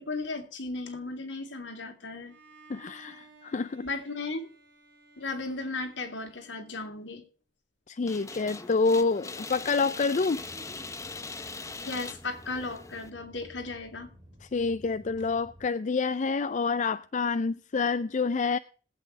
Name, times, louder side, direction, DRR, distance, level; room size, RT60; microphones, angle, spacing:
voice 1, 0.0-2.3 3.8-4.5 5.2-7.2 11.8-14.1, left 3 dB, 75° left, 2.8 m, -36 dB
Bowed string instrument, 2.2-7.3, right 3 dB, 85° right, 3.5 m, -57 dB
voice 2, 2.7-3.8 7.9-10.4 14.4-18.6, left 4 dB, 40° left, 0.4 m, -28 dB
sound 1, 8.1-13.1, left 3 dB, 15° left, 0.8 m, -41 dB
sound 2, 10.4-15.7, equal, 25° right, 2.7 m, -54 dB
20.5 x 8.3 x 3.3 m
head